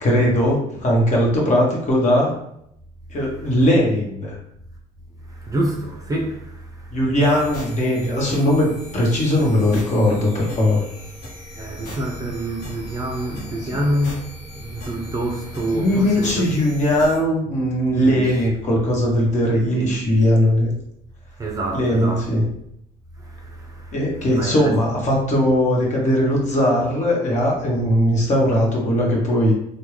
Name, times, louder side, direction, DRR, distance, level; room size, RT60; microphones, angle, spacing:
voice 1, 0.0-2.3 3.1-4.4 6.9-10.8 13.6-13.8 15.7-20.7 21.7-22.4 23.9-29.5, equal, 45° left, 1.2 m, -19 dB
voice 2, 5.3-6.9 11.6-16.5 17.9-18.4 18.7-18.8 19.5-19.9 21.4-22.3 23.2-23.9 24.3-24.7, right 1 dB, 20° right, 0.5 m, -27 dB
sound 1, 7.2-17.2, left 1 dB, 75° left, 1.0 m, -39 dB
3.4 x 2.2 x 3.1 m
cardioid pair, 110°, 17 cm